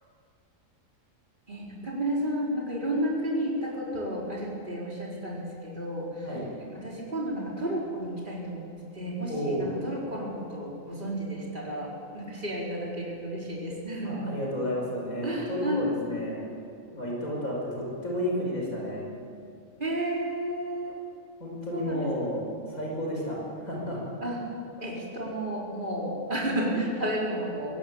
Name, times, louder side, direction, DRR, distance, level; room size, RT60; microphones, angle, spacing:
voice 1, 1.5-6.3 6.7-14.3 15.2-15.9 19.8-21.0 21.7-22.1 24.2-24.4 24.8-27.8, right 1 dB, 35° right, -4 dB, 4.6 m, -32 dB
voice 2, 9.3-9.7 14.0-16.4 16.9-19.0 21.4-22.4 22.7-23.4 23.7-24.0, equal, 80° left, -3 dB, 6.3 m, -31 dB
23.0 x 18.0 x 8.7 m, 2.4 s
omnidirectional pair, 1.4 m